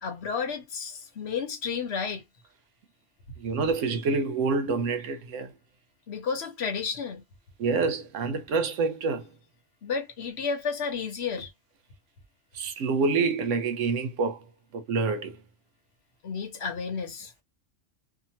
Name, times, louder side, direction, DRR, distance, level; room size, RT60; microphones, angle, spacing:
voice 1, 0.0-2.2 6.1-7.2 9.8-11.5 16.2-17.3, left 5 dB, 65° left, 1.1 m, -32 dB
voice 2, 3.4-5.5 7.6-9.3 12.5-14.4 14.7-15.4, right 4 dB, 80° right, 1.0 m, -27 dB
2.8 x 2.3 x 2.8 m
omnidirectional pair, 1.3 m